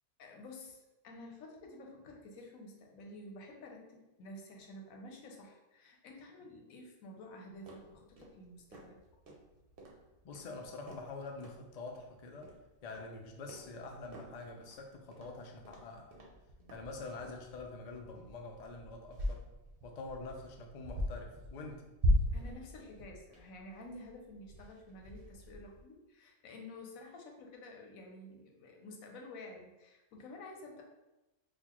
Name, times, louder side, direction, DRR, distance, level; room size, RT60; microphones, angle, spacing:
voice 1, 0.2-9.0 22.3-30.8, left 1 dB, 90° left, 1 dB, 1.1 m, -51 dB
sound 1, 7.5-25.8, equal, 50° right, 0.8 m, -40 dB
voice 2, 10.2-12.5 12.8-16.1 16.7-19.5 19.8-21.9, left 3 dB, 75° left, 2 dB, 0.3 m, -46 dB
4.2 x 2.3 x 2.9 m, 1.0 s
omnidirectional pair, 1.4 m